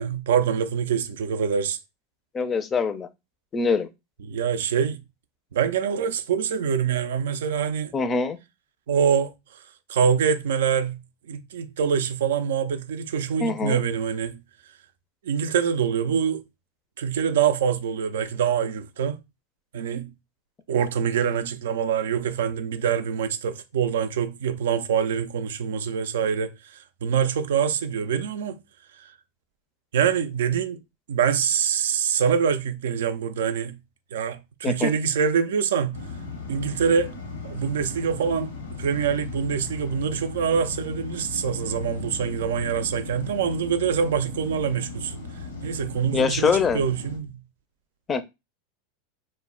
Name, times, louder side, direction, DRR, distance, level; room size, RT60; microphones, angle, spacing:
voice 1, 0.0-1.8 4.2-5.0 5.5-7.9 8.9-9.3 9.9-11.0 11.3-14.4 15.2-16.4 17.0-19.2 19.7-20.1 20.7-28.6 29.0-29.1 29.9-30.8 31.1-33.8 34.1-36.0 36.5-37.1 37.4-45.2 45.6-47.4, right 7 dB, 75° right, 0.4 m, -25 dB
voice 2, 2.3-3.1 3.5-3.9 7.9-8.4 13.4-13.8 34.6-34.9 46.1-46.8 48.1-48.2, left 5 dB, 25° left, 0.4 m, -23 dB
sound 1, 35.9-47.2, left 4 dB, 85° left, 0.7 m, -37 dB
2.1 x 2.0 x 3.6 m
hypercardioid pair, 95°, 0 cm